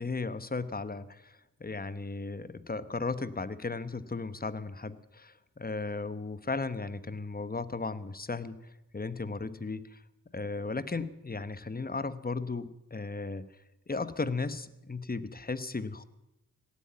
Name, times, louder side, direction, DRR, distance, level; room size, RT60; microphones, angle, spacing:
voice 1, 0.0-10.0 10.3-13.5 13.9-16.0, left 3 dB, 25° left, 14 dB, 1.1 m, -36 dB
17.5 x 8.5 x 9.3 m, 0.95 s
cardioid pair, 55°, 33 cm